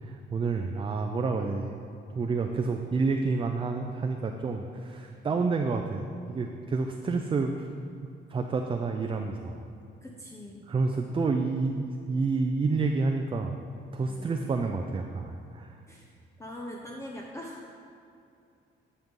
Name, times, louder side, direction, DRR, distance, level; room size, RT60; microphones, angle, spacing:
voice 1, 0.0-1.8 2.1-6.0 6.3-7.7 8.3-9.6 10.7-13.5 13.9-15.8, right 4 dB, 25° right, 4 dB, 0.4 m, -29 dB
voice 2, 10.0-10.7 14.1-14.3 15.9-16.1 16.4-17.7, left 1 dB, 15° left, -1 dB, 0.7 m, -42 dB
10.5 x 5.4 x 3.7 m, 2.5 s
cardioid pair, 90°, 20 cm